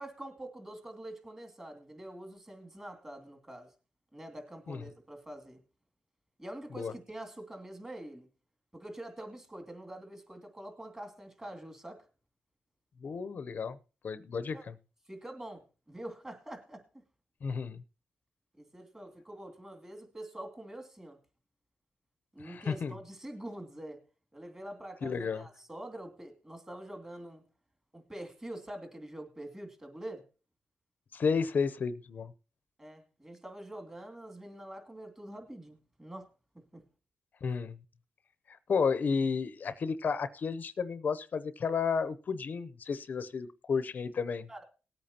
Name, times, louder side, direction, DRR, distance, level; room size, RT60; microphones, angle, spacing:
voice 1, 0.0-3.7 4.1-5.6 6.4-8.3 8.7-12.1 14.5-14.6 15.0-16.8 18.6-21.2 22.3-24.0 24.3-27.4 27.9-30.2 32.8-36.3 36.5-36.8 44.5-44.6, right 1 dB, 15° right, 4 dB, 2.6 m, -45 dB
voice 2, 13.0-13.8 14.0-14.7 17.4-17.8 22.4-22.9 25.0-25.4 31.1-32.3 37.4-37.8 38.5-44.5, left 5 dB, 55° left, 15 dB, 0.7 m, -32 dB
19.5 x 8.6 x 2.9 m, 0.33 s
cardioid pair, 90°, 4 cm